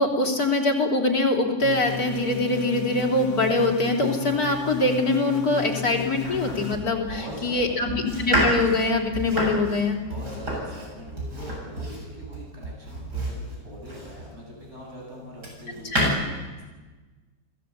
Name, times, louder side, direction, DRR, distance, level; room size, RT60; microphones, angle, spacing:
voice 1, 0.0-10.0 15.9-16.1, left 2 dB, 60° left, 1 dB, 3.7 m, -23 dB
sound 1, 1.6-6.8, left 6 dB, 80° left, 1.8 m, -36 dB
Domestic sounds home sounds, 6.2-14.4 15.0-16.1, equal, 70° right, 8.4 m, -30 dB
voice 2, 7.0-7.8 10.0-16.6, equal, 40° right, -1 dB, 7.9 m, -42 dB
29.5 x 17.5 x 8.2 m, 1.3 s
omnidirectional pair, 1.9 m